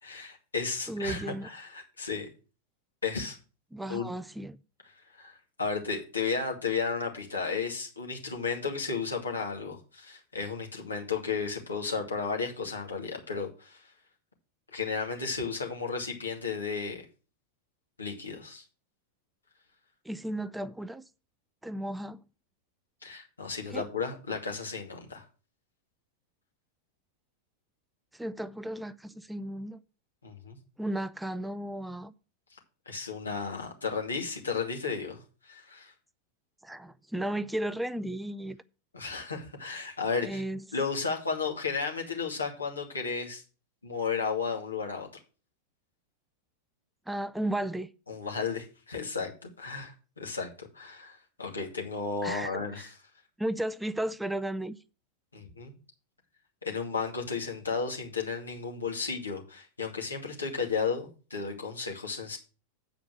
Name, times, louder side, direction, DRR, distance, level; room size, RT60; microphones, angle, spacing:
voice 1, 0.0-2.3 3.0-3.4 3.9-4.1 5.2-13.8 14.7-17.0 18.0-18.6 23.0-25.2 30.2-30.6 32.9-35.2 35.4-35.9 38.9-40.4 40.7-43.4 43.8-45.1 48.1-52.9 55.3-55.7 56.6-62.4, left 5 dB, 75° left, 2.3 m, -33 dB
voice 2, 0.9-1.5 3.7-4.6 20.1-21.0 21.6-22.2 23.7-23.9 28.1-29.8 30.8-32.1 36.6-38.6 40.2-40.6 47.1-47.9 52.2-52.8 53.4-54.8, right 1 dB, 5° right, 0.4 m, -34 dB
8.3 x 5.1 x 7.4 m
figure-of-eight pair, 90°, 0 cm